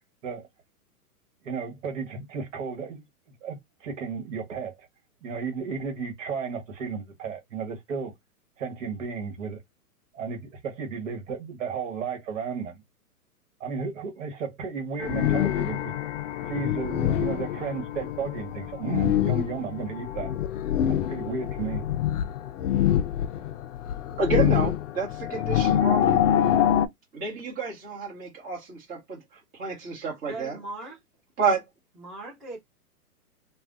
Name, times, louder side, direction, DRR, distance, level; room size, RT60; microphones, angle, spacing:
voice 1, 1.4-3.0 3.4-4.9 5.2-8.1 8.6-9.6 10.1-12.8 13.6-15.9 16.4-20.3 21.1-21.8, right 5 dB, 55° right, 1.3 m, -33 dB
sound 1, 15.0-26.9, left 10 dB, 55° left, 0.5 m, -25 dB
voice 2, 24.2-26.3 27.1-29.2 29.5-30.6 31.4-31.6, right 5 dB, 20° right, 1.3 m, -29 dB
voice 3, 30.3-31.0 32.0-32.6, right 2 dB, ahead, 0.7 m, -39 dB
3.2 x 2.3 x 2.5 m
hypercardioid pair, 145°, 46 cm